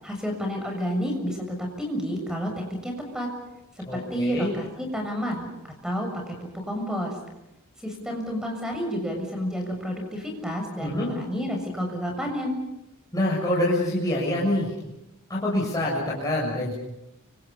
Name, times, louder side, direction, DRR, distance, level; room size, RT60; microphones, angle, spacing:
voice 1, 0.0-3.3 3.9-5.5 5.8-7.1 7.8-12.6, equal, 5° right, 3 dB, 6.8 m, -30 dB
voice 2, 3.9-4.5 10.8-11.1 13.1-14.7 15.3-16.7, left 1 dB, 15° left, -5 dB, 7.0 m, -25 dB
30.0 x 26.5 x 5.5 m, 0.89 s
head